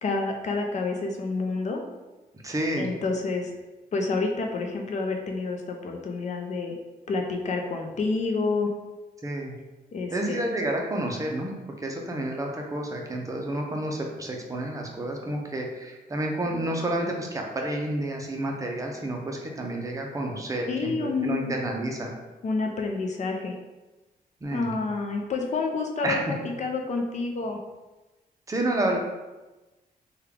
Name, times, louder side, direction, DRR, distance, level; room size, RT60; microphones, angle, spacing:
voice 1, 0.0-1.8 2.8-3.5 3.9-6.8 7.1-8.7 9.9-10.4 20.7-21.5 22.4-23.6 24.5-27.6, left 3 dB, 50° left, 3 dB, 0.5 m, -29 dB
voice 2, 2.4-2.9 9.2-9.5 10.1-11.5 11.8-22.1 24.4-24.7 26.0-26.2 28.5-29.0, right 1 dB, 20° right, 1 dB, 0.5 m, -30 dB
3.5 x 2.3 x 3.3 m, 1.1 s
wide cardioid pair, 125°, 16 cm